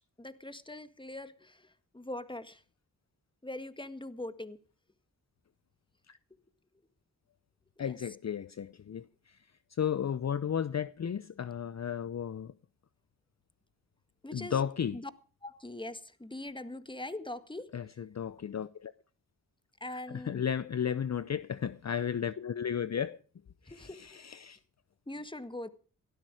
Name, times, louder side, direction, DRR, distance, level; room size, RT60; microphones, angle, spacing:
voice 1, 0.2-2.6 3.4-4.6 7.8-7.9 14.2-14.6 14.9-15.1 15.4-17.7 19.8-20.4 23.7-24.2 25.1-25.7, left 1 dB, 15° left, 1.8 m, -42 dB
voice 2, 7.8-9.4 9.7-12.5 14.3-15.0 17.7-18.9 19.9-23.2 23.6-24.6, left 8 dB, 45° left, 0.7 m, -34 dB
17.5 x 12.5 x 4.9 m
supercardioid pair, 40°, 37 cm